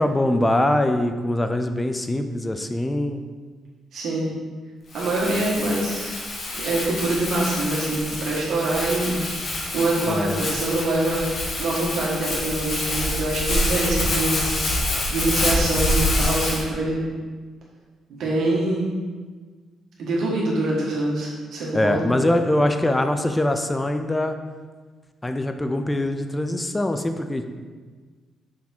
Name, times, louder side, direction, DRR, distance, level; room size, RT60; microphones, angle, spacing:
voice 1, 0.0-3.2 10.1-10.5 21.7-24.4 25.2-27.4, left 1 dB, 15° left, 7 dB, 0.4 m, -23 dB
voice 2, 3.9-4.3 4.9-6.3 6.5-11.3 11.6-14.8 15.1-17.1 18.1-19.0 20.0-22.1, right 2 dB, 70° right, -4 dB, 1.7 m, -25 dB
Crumpling crinkling, 4.9-16.6, left 1 dB, 55° left, 1.2 m, -26 dB
6.2 x 3.5 x 4.4 m, 1.5 s
cardioid pair, 90°, 0 cm